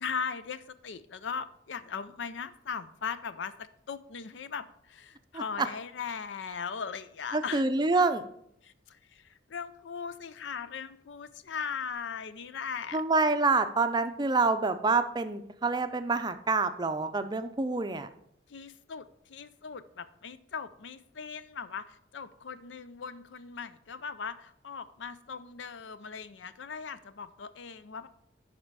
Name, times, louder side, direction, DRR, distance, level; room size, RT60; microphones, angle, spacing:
voice 1, 0.0-7.6 8.6-13.0 18.5-28.1, left 6 dB, 80° left, 13 dB, 0.5 m, -39 dB
voice 2, 5.3-5.7 7.3-8.2 12.9-18.1, right 3 dB, 25° right, 9 dB, 0.5 m, -27 dB
11.0 x 4.3 x 4.7 m, 0.72 s
head